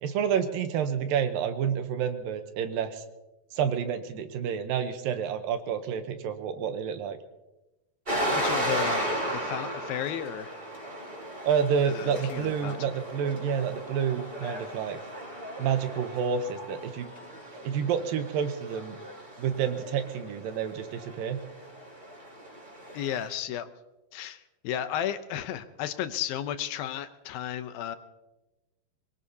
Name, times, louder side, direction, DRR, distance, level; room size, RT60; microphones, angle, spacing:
voice 1, 0.0-3.0 3.5-7.2 11.4-15.0 15.6-17.1 17.6-19.0 19.4-21.4, right 7 dB, 75° right, 8 dB, 2.5 m, -29 dB
sound 1, 8.1-23.3, right 1 dB, 15° right, 3.9 m, -35 dB
voice 2, 8.3-10.6 11.9-12.9 22.9-23.7 24.1-28.0, left 10 dB, 80° left, 11 dB, 2.4 m, -34 dB
23.0 x 21.5 x 2.8 m, 1.0 s
omnidirectional pair, 4.4 m